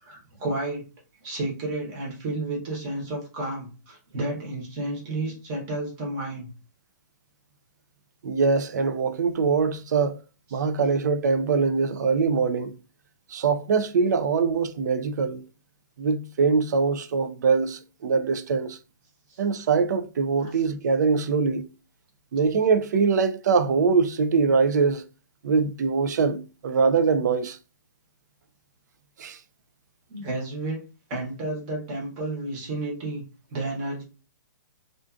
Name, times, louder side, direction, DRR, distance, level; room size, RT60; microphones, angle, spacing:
voice 1, 0.0-0.9 1.2-6.5 10.5-10.6 19.3-19.4 20.4-20.6 30.1-30.8 31.1-33.2 33.5-34.0, right 2 dB, 25° right, 0.9 m, -31 dB
voice 2, 8.2-10.2 10.5-12.7 13.3-15.4 16.0-18.8 19.4-21.7 22.3-25.0 25.4-27.6 29.2-29.4, right 5 dB, 60° right, 0.3 m, -23 dB
2.4 x 2.4 x 2.4 m
hypercardioid pair, 170°, 10 cm